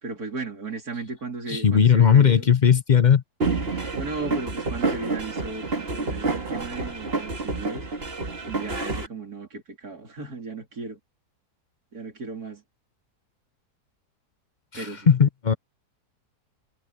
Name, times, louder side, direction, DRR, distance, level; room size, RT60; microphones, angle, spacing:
voice 1, 0.0-2.5 3.9-7.9 8.4-11.0 11.9-12.6 14.7-15.2, right 3 dB, 65° right, 4.1 m, -35 dB
voice 2, 1.5-3.2 14.7-15.5, left 7 dB, 45° left, 0.6 m, -18 dB
sound 1, 3.4-9.1, right 3 dB, 35° right, 2.6 m, -28 dB
omnidirectional pair, 1.7 m